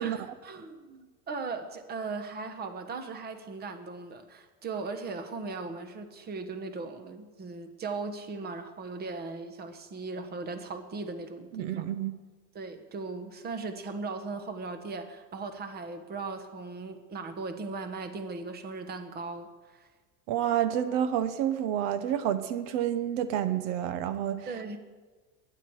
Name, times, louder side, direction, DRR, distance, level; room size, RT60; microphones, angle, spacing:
voice 1, 0.0-11.9 12.5-19.9 24.5-24.8, right 3 dB, 25° right, 8 dB, 1.2 m, -38 dB
voice 2, 11.5-12.2 20.3-24.5, right 10 dB, 70° right, 12 dB, 0.9 m, -29 dB
21.0 x 9.8 x 4.9 m, 1.3 s
cardioid pair, 155°, 39 cm